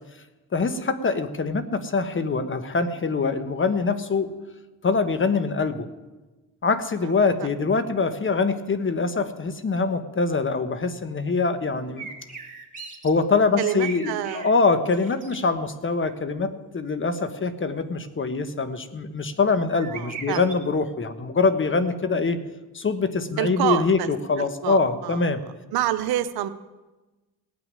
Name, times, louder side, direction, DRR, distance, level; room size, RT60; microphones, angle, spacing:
voice 1, 0.5-4.3 4.8-5.9 6.6-12.1 13.0-22.4 22.7-25.4, left 4 dB, 35° left, 10 dB, 1.3 m, -24 dB
sound 1, 12.0-13.1 13.5-14.5 14.9-15.4 19.7-20.6, right 6 dB, 20° right, 2.7 m, -39 dB
voice 2, 13.6-14.5 19.9-20.4 23.4-24.1 24.4-25.2 25.7-26.5, right 13 dB, 90° right, 11 dB, 0.8 m, -28 dB
17.5 x 6.1 x 9.7 m, 1.2 s
cardioid pair, 80°, 36 cm